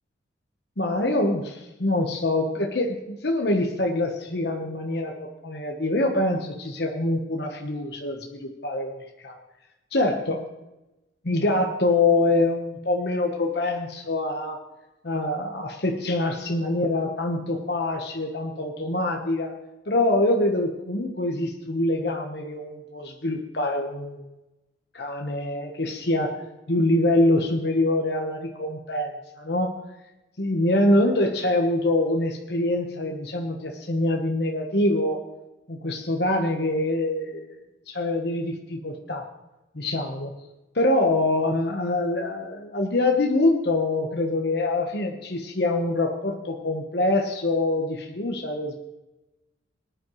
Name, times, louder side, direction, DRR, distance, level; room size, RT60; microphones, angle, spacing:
voice 1, 0.8-9.3 9.9-10.4 11.2-14.6 15.0-19.5 19.9-24.2 24.9-26.4 26.7-29.7 30.4-35.2 35.7-37.6 37.9-39.3 39.7-40.3 40.7-48.7, left 2 dB, 55° left, 2 dB, 1.2 m, -25 dB
19.5 x 10.5 x 3.1 m, 1.0 s
head